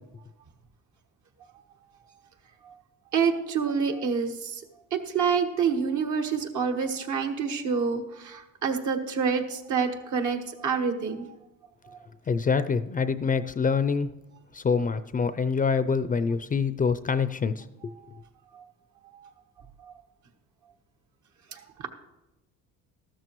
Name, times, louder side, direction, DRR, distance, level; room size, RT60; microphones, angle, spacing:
voice 1, 3.1-4.6 4.9-11.3 11.9-12.0 18.5-18.6 19.1-19.3 19.8-19.9 21.5-21.9, right 6 dB, 65° right, 4 dB, 1.4 m, -28 dB
voice 2, 12.3-14.1 14.5-17.9, left 5 dB, 25° left, 13 dB, 0.4 m, -26 dB
13.5 x 12.5 x 3.1 m, 0.95 s
cardioid pair, 90°, 32 cm